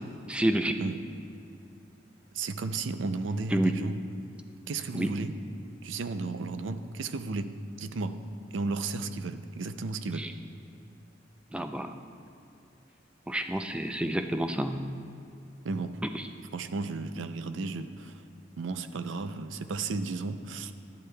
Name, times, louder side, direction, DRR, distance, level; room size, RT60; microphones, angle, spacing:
voice 1, 0.3-0.7 3.5-3.7 4.9-5.1 10.2-10.3 11.5-11.9 13.3-14.9 16.1-16.3, right 1 dB, 5° right, 7 dB, 0.3 m, -29 dB
voice 2, 2.3-4.0 4.7-5.3 5.8-8.2 8.5-10.3 15.6-16.0 16.5-18.2 18.6-20.7, right 3 dB, 75° right, 10 dB, 0.4 m, -34 dB
12.0 x 11.5 x 2.2 m, 2.5 s
head